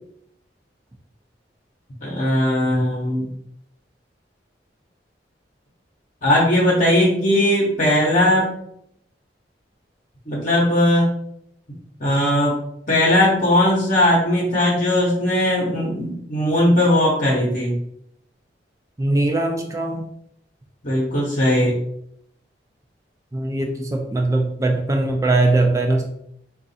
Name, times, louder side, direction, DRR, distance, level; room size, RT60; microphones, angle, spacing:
voice 1, 2.0-3.3 6.2-8.5 10.3-11.1 12.0-12.5 12.9-17.7 20.8-21.8, left 1 dB, 45° left, -4 dB, 0.9 m, -18 dB
voice 2, 19.0-20.1 23.3-26.0, right 2 dB, 20° right, 2 dB, 0.4 m, -20 dB
3.8 x 2.4 x 4.0 m, 0.73 s
head